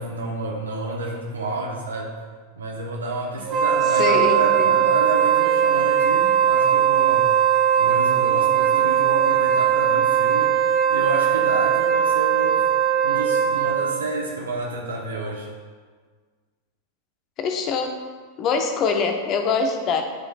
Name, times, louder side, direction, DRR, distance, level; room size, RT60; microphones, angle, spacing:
voice 1, 0.0-2.1 2.6-7.3 7.8-10.6 10.9-12.7 13.0-15.5, right 2 dB, 70° right, -1 dB, 0.9 m, -30 dB
Wind instrument woodwind instrument, 3.4-14.0, right 9 dB, 30° right, 0.7 m, -19 dB
voice 2, 3.9-4.7 17.4-17.9 18.4-20.0, left 5 dB, 35° left, 5 dB, 0.9 m, -23 dB
12.0 x 5.3 x 2.4 m, 1.6 s
figure-of-eight pair, 90°, 0 cm